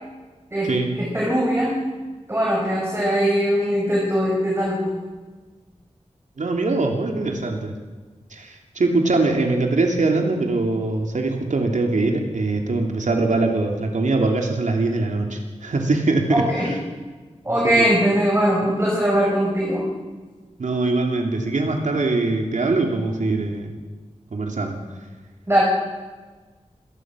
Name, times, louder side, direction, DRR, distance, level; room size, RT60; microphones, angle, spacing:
voice 1, 1.0-1.8 2.3-4.8 16.3-16.7 17.4-19.9 25.5-25.6, equal, 20° right, -3 dB, 6.0 m, -20 dB
voice 2, 6.4-7.7 8.3-16.8 17.8-17.9 20.6-23.7 24.3-24.8, right 3 dB, 85° right, 2 dB, 2.9 m, -22 dB
26.0 x 19.0 x 6.3 m, 1.3 s
wide cardioid pair, 90°, 12 cm